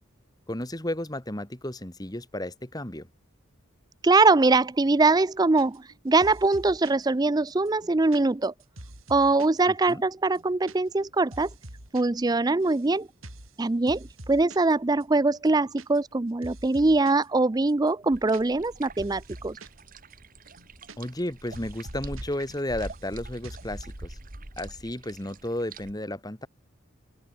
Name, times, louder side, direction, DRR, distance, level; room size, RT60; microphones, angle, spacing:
voice 1, 0.5-3.1 9.9-10.0 21.0-24.2 24.6-26.5, left 1 dB, 20° left, 2.2 m, -33 dB
voice 2, 4.0-8.5 9.1-11.5 11.9-13.1 13.6-19.6, right 3 dB, 20° right, 0.4 m, -22 dB
sound 1, 5.6-6.0 6.2-7.0 7.5-9.6 9.9-10.0 10.2-10.8 11.0-12.0 12.3-12.9 13.2-13.5 13.9-14.7 15.0-15.1 15.4-16.2 16.4-17.3 17.7-19.8 20.1-20.2 20.5-21.3 21.5-22.2 22.5-23.1 23.4-23.8, right 1 dB, 80° right, 7.1 m, -45 dB
sound 2, 18.1-25.9, right 2 dB, 40° right, 2.4 m, -43 dB
open air
head